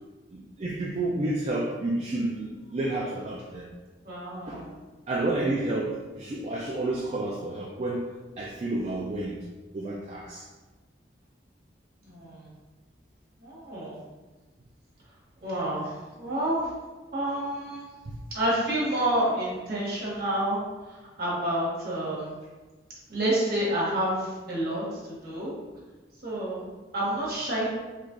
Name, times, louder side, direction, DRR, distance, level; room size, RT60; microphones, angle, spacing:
voice 1, 0.3-3.7 4.5-4.7 5.1-8.1 8.4-9.4 9.7-10.4 18.1-18.2, right 2 dB, 35° right, -4 dB, 0.3 m, -30 dB
voice 2, 4.0-4.7 12.0-12.5 13.4-14.0 15.4-16.6 17.1-17.8 18.3-20.6 20.9-22.4 23.1-25.5 26.2-27.7, right 1 dB, 55° right, -6 dB, 1.2 m, -29 dB
3.2 x 2.4 x 3.6 m, 1.3 s
head